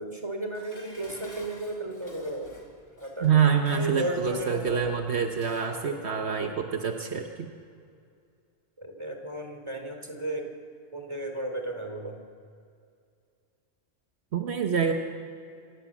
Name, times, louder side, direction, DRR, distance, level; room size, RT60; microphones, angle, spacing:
voice 1, 0.0-2.5 3.0-5.2 5.6-6.5 8.8-10.5 10.9-12.2, right 1 dB, 25° right, 4 dB, 3.4 m, -35 dB
Dishes pots and pans, 0.5-5.8 6.2-6.3, left 1 dB, 55° left, 3.1 m, -51 dB
voice 2, 3.2-7.5 14.3-14.9, right 7 dB, 75° right, 4 dB, 1.4 m, -26 dB
27.0 x 16.0 x 7.4 m, 2.4 s
omnidirectional pair, 1.1 m